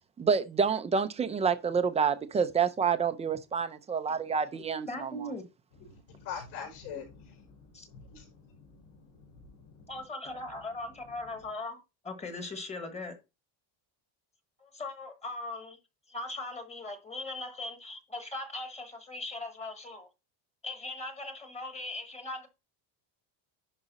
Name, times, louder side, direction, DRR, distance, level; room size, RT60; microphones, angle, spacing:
voice 1, 0.2-5.1, right 6 dB, 15° right, 0.4 m, -28 dB
voice 2, 4.9-5.4 7.7-7.9 9.9-13.2 14.6-15.8 16.1-20.1 20.6-22.5, left 2 dB, 15° left, 1.4 m, -39 dB
voice 3, 5.8-10.0 10.5-10.6, left 7 dB, 70° left, 5.0 m, -45 dB
10.5 x 4.9 x 4.1 m
cardioid pair, 175°, 47 cm